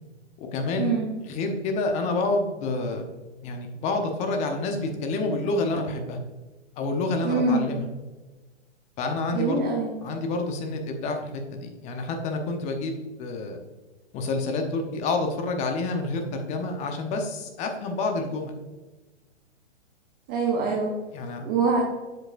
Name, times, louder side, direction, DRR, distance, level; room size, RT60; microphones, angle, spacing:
voice 1, 0.4-1.0 1.2-3.1 3.4-6.2 6.8-7.9 9.0-9.6 10.0-13.6 14.1-18.5 20.7-20.8 21.1-21.4, left 3 dB, 20° left, 4 dB, 0.9 m, -28 dB
voice 2, 7.2-7.7 9.3-9.9 20.3-20.9 21.4-21.8, right 4 dB, 10° right, -2 dB, 0.3 m, -24 dB
7.7 x 7.1 x 2.5 m, 1.2 s
hypercardioid pair, 125°, 35 cm